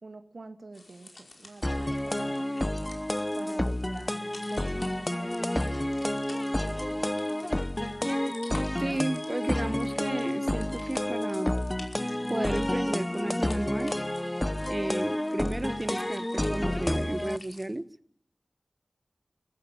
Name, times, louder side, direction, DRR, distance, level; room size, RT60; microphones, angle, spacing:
voice 1, 0.0-2.5 3.4-7.0, right 3 dB, 70° right, 6 dB, 2.3 m, -47 dB
sound 1, 0.7-17.7, left 2 dB, 65° left, 5.2 m, -52 dB
sound 2, 1.6-17.4, left 1 dB, 15° left, 0.8 m, -30 dB
voice 2, 8.8-11.5 12.3-14.0 14.7-17.9, right 1 dB, 25° right, 13 dB, 1.0 m, -33 dB
22.0 x 14.5 x 10.0 m, 0.65 s
wide cardioid pair, 75°, 0 cm